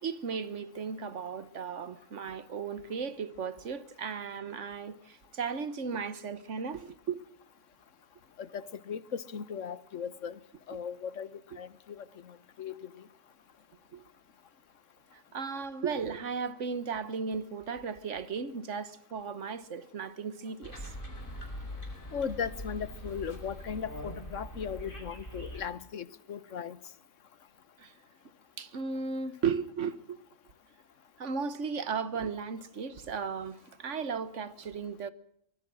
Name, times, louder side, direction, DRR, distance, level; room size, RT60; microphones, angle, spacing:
voice 1, 0.0-7.2 10.7-10.8 13.9-14.0 15.1-20.9 27.8-27.9 28.6-30.2 31.2-35.1, right 5 dB, 65° right, 1.5 m, -35 dB
voice 2, 8.4-10.4 10.7-11.3 11.6-12.0 12.6-12.7 22.1-26.8, left 7 dB, 70° left, 1.4 m, -37 dB
sound 1, 20.6-25.6, equal, 40° left, 5.2 m, -42 dB
24.5 x 19.5 x 6.2 m
omnidirectional pair, 1.3 m